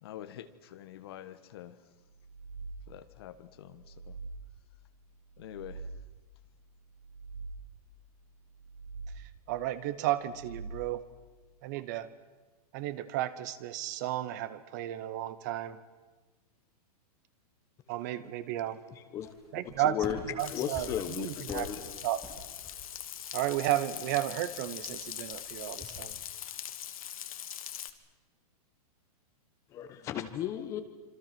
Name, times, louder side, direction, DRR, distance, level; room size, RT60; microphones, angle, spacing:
voice 1, 0.0-1.8 2.9-4.2 5.4-6.0, left 12 dB, 40° left, 1.3 m, -47 dB
sound 1, 2.1-3.2 3.7-4.8 5.3-6.4 6.9-8.0 8.5-9.5 10.1-11.2, right 3 dB, 70° right, 7.2 m, -45 dB
voice 2, 9.5-11.0 11.6-12.1 12.7-15.8 17.9-18.8 19.5-20.0 20.4-21.7 22.0-22.2 23.3-26.2, right 13 dB, 30° right, 1.0 m, -33 dB
sound 2, 19.2-26.2, left 1 dB, ahead, 4.2 m, -49 dB
voice 3, 19.8-20.2 20.5-21.8 29.7-30.8, left 10 dB, 15° left, 1.1 m, -34 dB
Frying (food), 20.4-27.9, left 10 dB, 60° left, 1.7 m, -42 dB
26.5 x 26.0 x 6.1 m
supercardioid pair, 180°, 20 cm